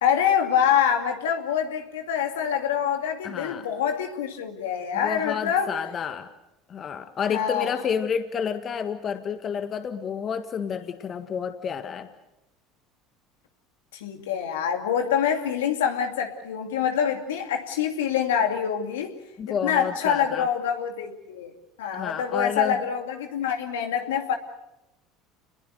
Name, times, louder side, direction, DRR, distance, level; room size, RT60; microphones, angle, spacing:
voice 1, 0.0-5.7 7.3-7.7 13.9-19.1 19.5-21.5 21.8-24.4, left 8 dB, 80° left, 4 dB, 2.5 m, -25 dB
voice 2, 3.2-3.7 4.9-6.3 6.7-12.1 19.4-20.5 21.9-22.8, left 7 dB, 40° left, 8 dB, 1.7 m, -30 dB
29.5 x 21.5 x 6.6 m, 0.89 s
hypercardioid pair, 70°, 0 cm